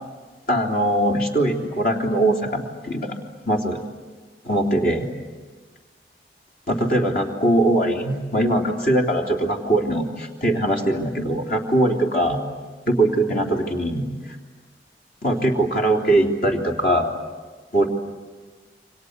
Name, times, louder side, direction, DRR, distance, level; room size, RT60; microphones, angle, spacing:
voice 1, 0.5-3.1 3.4-3.8 4.4-5.1 6.7-12.4 12.9-14.3 15.2-17.1 17.7-17.9, right 1 dB, 50° left, 2 dB, 3.5 m, -21 dB
29.0 x 25.0 x 8.2 m, 1.4 s
head